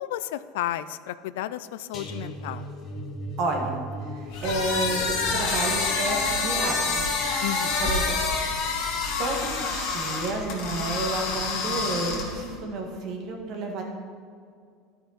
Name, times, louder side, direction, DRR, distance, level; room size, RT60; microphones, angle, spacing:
voice 1, 0.0-2.7 7.4-7.9, left 13 dB, 85° left, 14 dB, 0.3 m, -33 dB
sound 1, 1.9-9.0 9.4-9.7 10.0-10.1, right 1 dB, 35° left, 1.5 m, -40 dB
voice 2, 3.4-3.8 4.1-7.1 7.8-8.2 9.2-13.8, right 2 dB, 55° right, 1 dB, 1.7 m, -30 dB
sound 2, 4.3-12.5, left 4 dB, 65° left, 2.1 m, -27 dB
12.0 x 5.7 x 4.2 m, 2.2 s
supercardioid pair, 130°, 0 cm